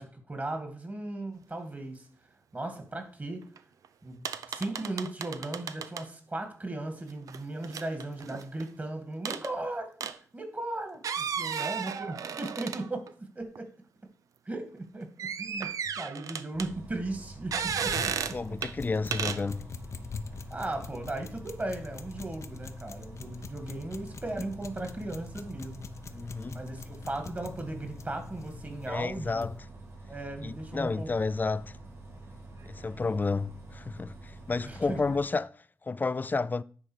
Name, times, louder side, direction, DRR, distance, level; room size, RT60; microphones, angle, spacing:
voice 1, 0.0-2.1 2.5-3.5 4.0-9.9 10.3-13.0 13.4-13.7 14.5-15.1 15.4-18.3 20.5-25.9 26.5-29.5 30.1-31.1 34.7-35.0, right 2 dB, 30° right, 2.1 m, -37 dB
sound 1, 3.6-3.7 3.8-3.9 4.2-6.0 7.3-8.6 9.2-9.5 10.0-10.2 10.9-13.1 13.5-13.6 15.2-16.7 17.5-18.4 18.6-18.7 19.1-19.4, right 7 dB, 85° right, 0.5 m, -34 dB
Bus, 16.5-35.2, right 2 dB, 55° right, 5.2 m, -47 dB
sound 2, 17.7-29.6, left 5 dB, 60° left, 0.7 m, -44 dB
voice 2, 18.3-19.7 26.1-26.6 28.9-29.5 30.4-31.8 32.6-36.6, left 4 dB, 35° left, 0.4 m, -31 dB
9.9 x 3.8 x 6.3 m
cardioid pair, 75°, 6 cm